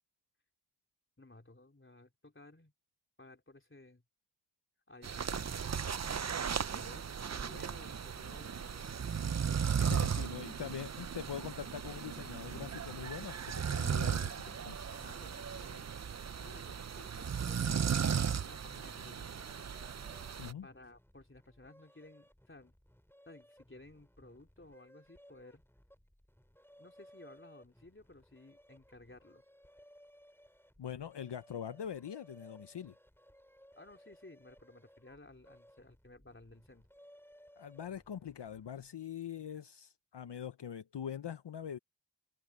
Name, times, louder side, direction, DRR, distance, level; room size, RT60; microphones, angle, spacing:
voice 1, 1.2-2.7 3.2-4.0 4.9-5.6 6.6-9.2 9.9-10.5 14.9-19.6 20.6-22.7 23.3-25.6 26.8-29.4 33.8-36.9, left 2 dB, 25° left, 3.7 m, -56 dB
sound 1, 5.0-20.5, right 7 dB, 40° right, 0.5 m, -36 dB
voice 2, 9.8-14.8 20.4-20.7 30.8-32.9 37.6-41.8, left 8 dB, 70° left, 0.8 m, -43 dB
sound 2, 19.4-38.9, equal, 5° left, 4.8 m, -62 dB
wide cardioid pair, 50°, 44 cm